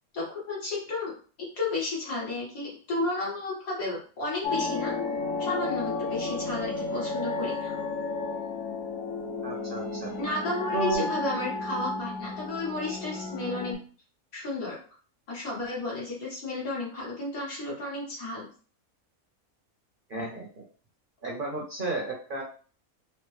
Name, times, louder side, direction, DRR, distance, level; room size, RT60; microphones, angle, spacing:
voice 1, 0.1-4.9 5.4-7.8 10.2-13.8 14.3-14.8 15.3-18.5, left 2 dB, 85° left, -5 dB, 2.1 m, -33 dB
sound 1, 4.4-13.7, left 3 dB, 70° left, 1.1 m, -32 dB
voice 2, 9.4-10.1 10.7-11.1 20.1-20.6 21.2-22.4, right 3 dB, 45° right, 0 dB, 0.8 m, -32 dB
4.3 x 2.0 x 3.1 m, 0.40 s
omnidirectional pair, 1.5 m